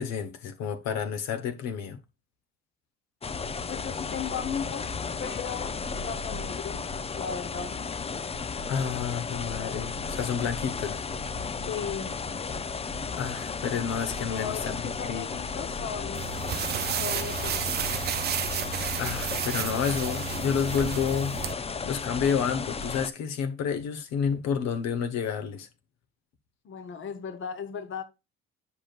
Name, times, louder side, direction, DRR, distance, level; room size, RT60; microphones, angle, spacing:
voice 1, 0.0-2.0 8.7-11.0 13.2-15.2 19.0-21.4 21.8-25.7, left 7 dB, 65° left, 1.1 m, -30 dB
sound 1, 3.2-23.1, left 5 dB, 20° left, 0.5 m, -34 dB
voice 2, 3.7-4.9 5.2-7.8 11.7-12.1 14.3-16.5 16.8-17.7 26.6-28.0, left 7 dB, 45° left, 1.0 m, -36 dB
sound 2, 16.1-21.5, right 11 dB, 35° right, 0.4 m, -32 dB
9.8 x 5.1 x 2.4 m
hypercardioid pair, 65°, 29 cm